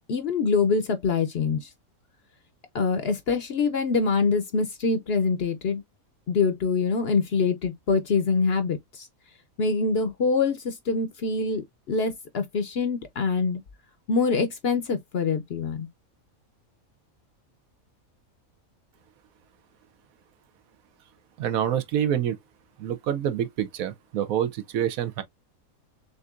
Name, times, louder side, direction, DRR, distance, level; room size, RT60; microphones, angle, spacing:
voice 1, 0.1-1.7 2.7-5.8 6.3-9.1 9.6-13.6 14.1-15.9, left 4 dB, 55° left, 0.8 m, -25 dB
voice 2, 21.4-22.4 22.8-25.2, right 10 dB, 75° right, 1.1 m, -27 dB
6.5 x 2.6 x 2.4 m
omnidirectional pair, 1.5 m